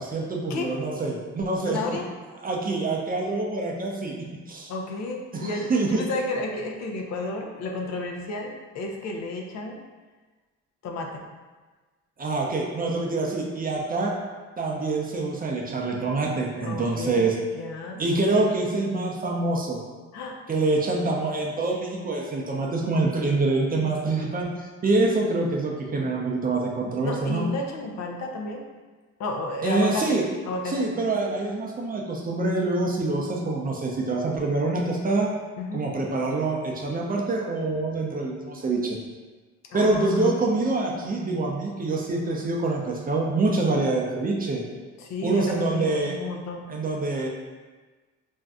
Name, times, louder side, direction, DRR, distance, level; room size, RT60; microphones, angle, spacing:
voice 1, 0.0-1.8 2.4-4.1 4.5-4.7 5.3-6.0 12.2-14.1 14.6-17.3 18.0-19.8 20.5-24.5 24.8-27.5 29.6-30.2 30.7-35.3 35.7-39.0 39.7-44.6 45.2-46.1 46.7-47.3, right 2 dB, 30° right, -1 dB, 0.5 m, -25 dB
voice 2, 1.6-2.1 4.7-9.8 10.8-11.2 16.6-17.2 17.6-18.0 20.1-20.4 27.0-28.6 29.2-30.8 31.2-31.4 35.6-35.8 39.7-40.5 45.0-46.7, left 2 dB, 60° left, 2 dB, 0.5 m, -32 dB
2.6 x 2.2 x 3.5 m, 1.3 s
cardioid pair, 90°, 30 cm